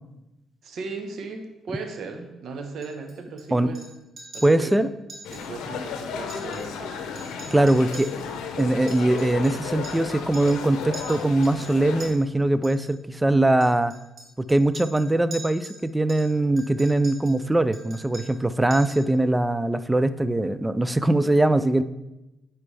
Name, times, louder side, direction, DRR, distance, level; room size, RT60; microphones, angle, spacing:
voice 1, 0.6-3.8 4.3-4.7 5.3-7.0 7.5-7.8, right 4 dB, 65° right, 5 dB, 1.1 m, -37 dB
Chink clink, 2.8-3.4 3.7-3.9 4.2-4.7 5.1-5.4 5.7-5.8 6.2-6.9 7.2-10.1 10.3-10.6 10.9-12.1 12.6-12.9 13.6-15.8 16.1-17.4 17.7-18.4 18.7-19.1, right 2 dB, 50° right, 2.2 m, -43 dB
voice 2, 4.4-4.9 7.5-8.1 8.6-13.9 14.5-21.8, right 1 dB, 10° right, 13 dB, 0.4 m, -21 dB
sound 1, 5.2-12.1, left 6 dB, 90° left, 0.7 m, -34 dB
9.9 x 4.4 x 3.4 m, 0.97 s
cardioid pair, 90°, 0 cm